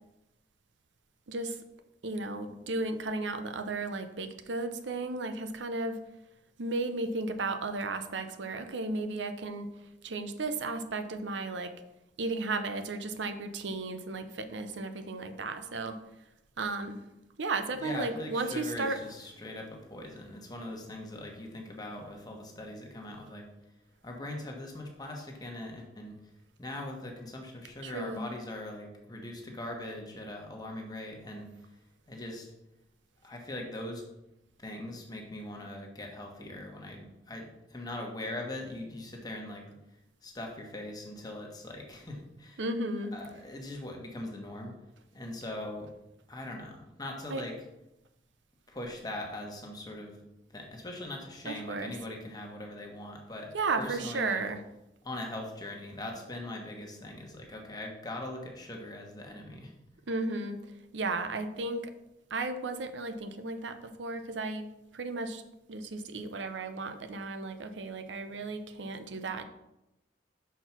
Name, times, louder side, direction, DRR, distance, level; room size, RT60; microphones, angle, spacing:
voice 1, 1.3-1.6 2.0-6.0 6.6-9.7 10.0-11.7 12.2-16.0 16.6-17.0 17.4-19.0 27.8-28.3 42.6-43.1 47.3-47.4 51.4-51.9 53.5-54.6 60.1-60.6 60.9-61.9 62.3-65.4 65.7-69.4, right 3 dB, 85° right, 8 dB, 0.7 m, -34 dB
voice 2, 17.7-23.5 24.0-26.2 26.6-31.5 32.1-32.5 33.2-34.0 34.6-39.6 40.2-42.6 43.1-44.7 45.1-45.9 46.3-47.5 48.7-50.2 50.5-54.4 55.0-59.7, left 1 dB, 20° left, 1 dB, 1.2 m, -41 dB
5.9 x 4.5 x 5.8 m, 0.91 s
head